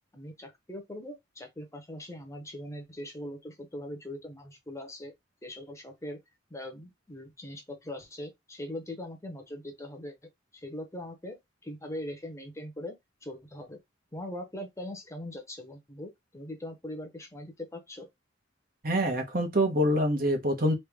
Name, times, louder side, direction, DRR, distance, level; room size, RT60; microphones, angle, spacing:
voice 1, 0.1-5.1 5.4-6.2 6.5-10.2 10.5-11.4 11.6-13.8 14.1-18.1, left 1 dB, 15° left, 0.9 m, -41 dB
voice 2, 18.8-20.7, equal, 50° right, 1.1 m, -25 dB
3.3 x 2.9 x 3.5 m
head